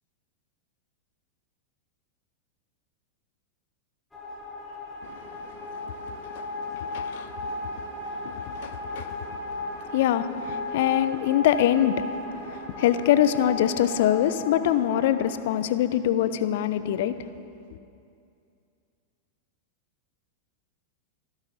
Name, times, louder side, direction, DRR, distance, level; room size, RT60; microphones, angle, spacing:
sound 1, 4.1-15.3, left 2 dB, 10° left, 4.2 m, -36 dB
voice 1, 5.0-17.3, left 11 dB, 55° left, 13 dB, 0.7 m, -25 dB
26.5 x 12.0 x 4.1 m, 2.5 s
figure-of-eight pair, 90°, 0 cm